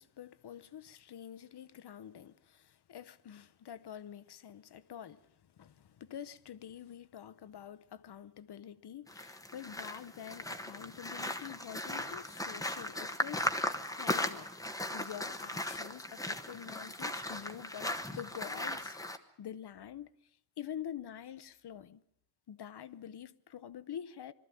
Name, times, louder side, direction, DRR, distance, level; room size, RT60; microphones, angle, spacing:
voice 1, 0.0-14.5 14.9-19.0 19.4-20.1 20.6-22.0 22.5-24.3, left 9 dB, 90° left, 0.8 m, -47 dB
sound 1, 9.1-19.2, left 1 dB, 10° left, 1.0 m, -37 dB
22.5 x 13.5 x 9.1 m
wide cardioid pair, 160°, 38 cm